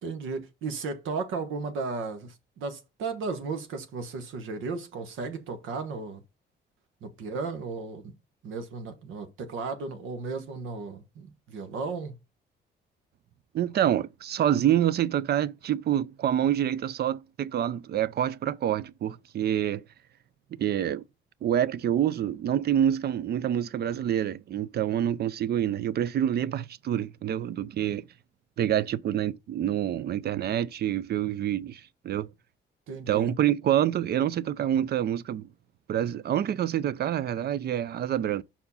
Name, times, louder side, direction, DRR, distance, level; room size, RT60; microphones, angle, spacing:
voice 1, 0.0-6.2 7.0-8.1 8.4-12.1 32.9-33.3, right 4 dB, 85° right, 1.2 m, -35 dB
voice 2, 13.5-19.8 20.6-21.0 21.4-28.1 28.6-32.3 33.1-35.5 35.9-38.4, right 10 dB, 55° right, 0.5 m, -27 dB
5.6 x 4.6 x 5.5 m
cardioid pair, 90°, 20 cm